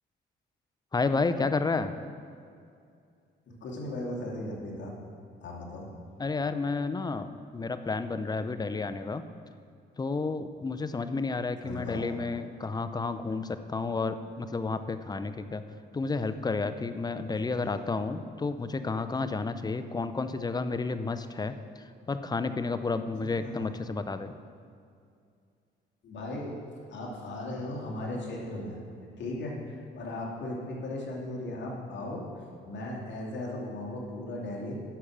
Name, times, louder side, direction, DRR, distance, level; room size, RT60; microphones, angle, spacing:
voice 1, 0.9-1.9 6.2-9.3 10.0-15.6 15.9-24.4, left 3 dB, 20° left, 11 dB, 0.6 m, -31 dB
voice 2, 3.5-5.0 5.4-5.9 11.6-12.1 17.6-17.7 23.4-23.7 26.0-26.6 26.9-32.3 32.7-34.8, left 1 dB, 65° left, -2 dB, 2.6 m, -37 dB
10.0 x 6.4 x 7.3 m, 2.4 s
cardioid pair, 90°, 20 cm